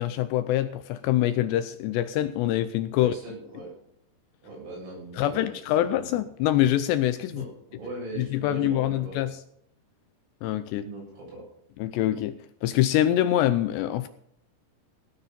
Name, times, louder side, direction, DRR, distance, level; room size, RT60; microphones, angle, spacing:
voice 1, 0.0-3.1 5.2-7.4 8.2-9.4 10.4-10.9 11.8-14.1, left 13 dB, 80° left, 2.5 m, -25 dB
voice 2, 2.9-3.7 4.4-6.0 7.3-9.2 10.8-11.4, right 2 dB, 85° right, 10.5 m, -40 dB
17.0 x 9.6 x 5.4 m
omnidirectional pair, 5.6 m